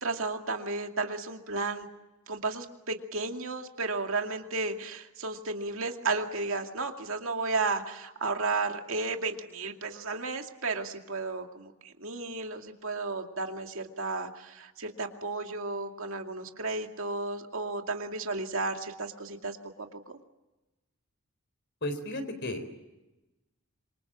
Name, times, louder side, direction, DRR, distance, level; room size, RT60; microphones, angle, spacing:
voice 1, 0.0-1.9 2.3-19.6 19.9-20.0, right 3 dB, 65° right, 4 dB, 2.4 m, -33 dB
voice 2, 21.8-22.7, left 1 dB, 50° left, 9 dB, 3.9 m, -34 dB
27.0 x 24.5 x 7.5 m, 1.0 s
head